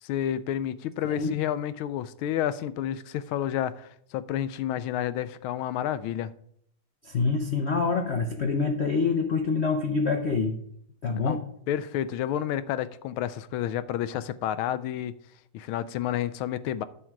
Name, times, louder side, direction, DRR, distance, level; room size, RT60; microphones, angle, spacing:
voice 1, 0.0-6.3 11.2-11.4 11.7-15.1 15.5-16.8, left 11 dB, 85° left, 15 dB, 1.4 m, -30 dB
voice 2, 7.0-10.6 11.0-11.4, left 4 dB, 65° left, 4 dB, 0.6 m, -26 dB
10.0 x 7.4 x 4.6 m, 0.70 s
omnidirectional pair, 2.2 m